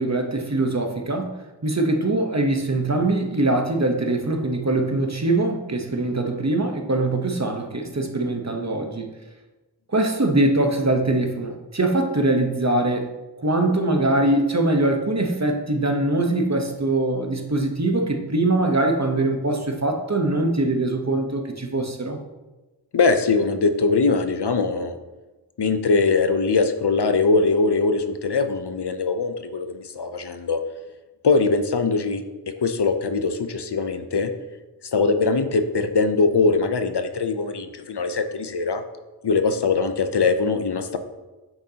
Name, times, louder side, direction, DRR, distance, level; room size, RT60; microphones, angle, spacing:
voice 1, 0.0-9.1 9.9-13.1 13.4-22.2, right 2 dB, 40° right, 3 dB, 1.0 m, -22 dB
voice 2, 22.9-25.0 25.6-30.6 31.2-32.2 32.6-34.3 34.9-38.8 39.2-41.0, left 4 dB, 70° left, 9 dB, 0.7 m, -21 dB
8.7 x 6.4 x 2.8 m, 1.1 s
wide cardioid pair, 45°, 42 cm